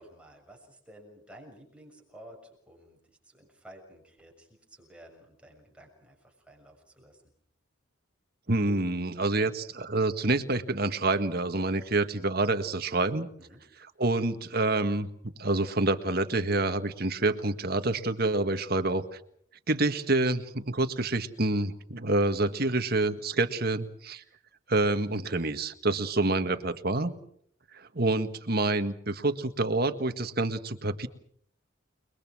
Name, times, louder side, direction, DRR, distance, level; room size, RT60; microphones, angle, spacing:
voice 1, 0.0-3.0 3.2-7.2 13.4-13.6, right 1 dB, 5° right, 0 dB, 6.6 m, -53 dB
voice 2, 8.5-13.3 14.0-19.2 19.7-24.2 24.7-27.2 27.7-31.1, right 2 dB, 50° right, 8 dB, 1.7 m, -27 dB
30.0 x 22.0 x 6.3 m, 0.65 s
head